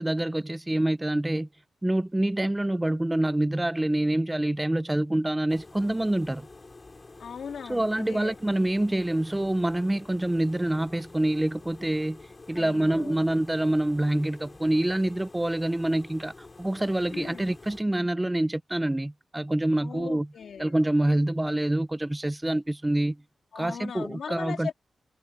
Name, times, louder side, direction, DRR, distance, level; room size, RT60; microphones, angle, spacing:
voice 1, 0.0-1.5 1.8-6.5 7.7-12.2 12.5-20.3 20.6-23.2 23.6-24.7, right 1 dB, 10° right, 0.4 m, -26 dB
sound 1, 5.5-17.8, left 3 dB, 25° left, 5.8 m, -49 dB
voice 2, 7.2-8.4 12.5-13.2 17.1-17.5 19.8-20.7 23.5-24.7, left 7 dB, 70° left, 3.4 m, -38 dB
wide cardioid pair, 130°, 0 cm